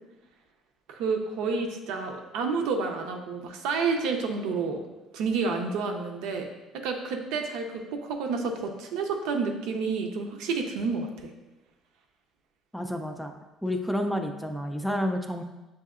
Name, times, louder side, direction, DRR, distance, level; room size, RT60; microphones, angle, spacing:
voice 1, 0.9-4.8 5.1-6.5 6.8-11.3, right 4 dB, 80° right, 3 dB, 0.6 m, -29 dB
voice 2, 12.7-13.3 13.6-15.4, equal, ahead, 4 dB, 0.3 m, -30 dB
7.1 x 2.7 x 2.4 m, 1.0 s
cardioid pair, 145°, 0 cm